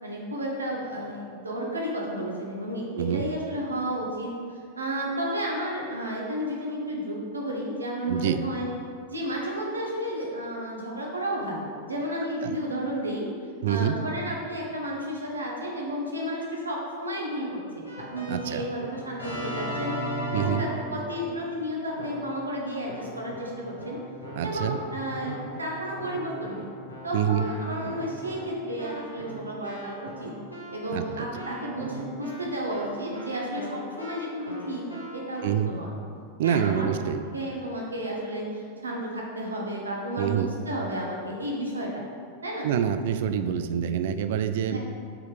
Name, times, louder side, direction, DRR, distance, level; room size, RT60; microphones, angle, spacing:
voice 1, 0.0-4.3 4.8-8.7 9.1-13.3 13.7-17.6 18.1-19.9 20.3-24.0 24.4-26.7 27.0-30.3 30.7-34.8 35.1-35.9 36.4-36.9 37.3-41.9 42.4-42.7 44.7-44.8, equal, 75° right, -2 dB, 1.4 m, -32 dB
voice 2, 8.1-8.4 12.4-12.5 13.6-14.0 18.3-18.7 20.3-20.6 24.4-24.8 27.1-27.4 30.9-31.3 35.4-35.7 36.4-37.2 40.2-40.5 42.6-44.8, right 9 dB, 55° right, 10 dB, 0.4 m, -26 dB
Keyboard (musical), 17.9-21.5 22.0-22.5 22.9-35.4, equal, 85° left, 1.7 m, -38 dB
6.9 x 4.8 x 5.0 m, 2.3 s
figure-of-eight pair, 90°, 0 cm